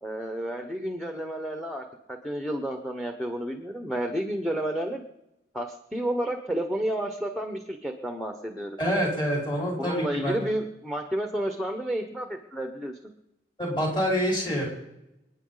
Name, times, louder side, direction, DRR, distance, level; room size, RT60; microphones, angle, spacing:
voice 1, 0.0-1.8 2.2-5.0 5.5-8.8 9.8-12.9, right 1 dB, ahead, 4 dB, 1.1 m, -31 dB
voice 2, 8.8-10.4 13.6-14.7, equal, 25° left, -3 dB, 5.0 m, -26 dB
28.5 x 9.6 x 4.0 m, 0.89 s
head